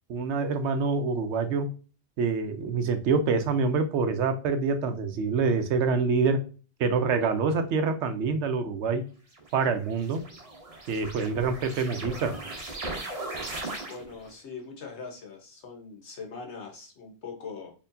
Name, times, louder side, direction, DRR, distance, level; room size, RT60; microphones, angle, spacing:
voice 1, 0.1-1.7 2.2-6.4 6.8-9.0 9.5-10.2 10.9-12.3, right 4 dB, 90° right, 9 dB, 0.9 m, -26 dB
sound 1, 9.3-14.3, right 2 dB, 35° right, 0.9 m, -38 dB
voice 2, 13.8-17.7, left 5 dB, 80° left, 1 dB, 1.4 m, -41 dB
4.4 x 3.0 x 2.6 m, 0.37 s
omnidirectional pair, 1.1 m